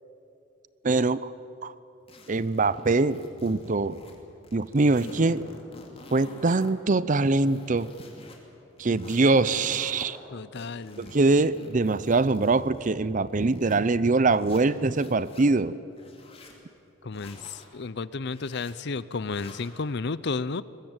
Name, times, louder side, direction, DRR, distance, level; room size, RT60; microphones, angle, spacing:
voice 1, 0.8-1.3 1.6-1.7 2.3-4.0 4.5-5.4 6.1-7.9 8.8-10.2 11.0-15.7, right 3 dB, 40° right, 17 dB, 0.6 m, -23 dB
sound 1, 2.1-4.2 4.4-6.7 7.1-8.4 8.8-10.1 10.6-13.8 14.3-15.4 15.9-16.6 17.1-17.7 18.3-18.7 19.2-19.7, left 1 dB, 30° left, 3.1 m, -46 dB
voice 2, 10.3-11.2 17.0-20.6, left 4 dB, 55° left, 17 dB, 0.6 m, -32 dB
22.0 x 21.0 x 9.0 m, 2.8 s
head